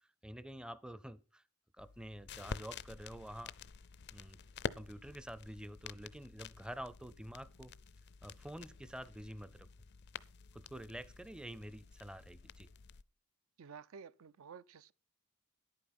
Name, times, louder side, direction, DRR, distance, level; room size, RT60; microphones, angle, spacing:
voice 1, 0.0-1.4 1.7-3.5 4.1-4.4 4.8-7.7 8.2-9.7 10.5-12.7, equal, 5° right, 0.5 m, -48 dB
sound 1, 1.8-13.0, left 6 dB, 55° left, 0.5 m, -49 dB
voice 2, 13.6-14.9, right 6 dB, 75° right, 0.5 m, -52 dB
10.5 x 8.7 x 5.9 m
head